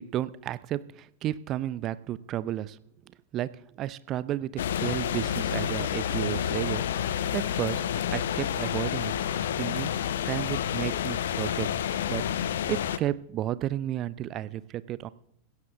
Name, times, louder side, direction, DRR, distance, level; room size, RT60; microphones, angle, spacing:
voice 1, 0.0-2.8 3.3-9.1 9.6-11.7 12.1-15.1, right 12 dB, 35° right, 17 dB, 0.5 m, -33 dB
sound 1, 4.6-13.0, left 9 dB, 60° left, 0.7 m, -29 dB
16.0 x 16.0 x 3.5 m, 0.71 s
figure-of-eight pair, 90°, 0 cm